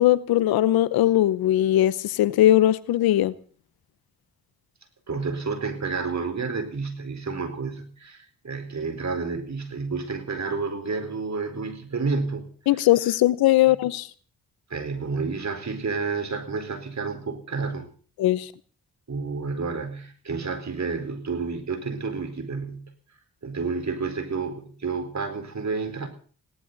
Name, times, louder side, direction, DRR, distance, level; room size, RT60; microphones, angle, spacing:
voice 1, 0.0-3.3 12.7-14.1 18.2-18.5, left 14 dB, 90° left, 0.9 m, -20 dB
voice 2, 5.1-12.5 14.7-17.9 19.1-22.9 23.4-26.1, right 4 dB, 50° right, 4.5 m, -30 dB
20.5 x 17.5 x 4.1 m
supercardioid pair, 40°, 36 cm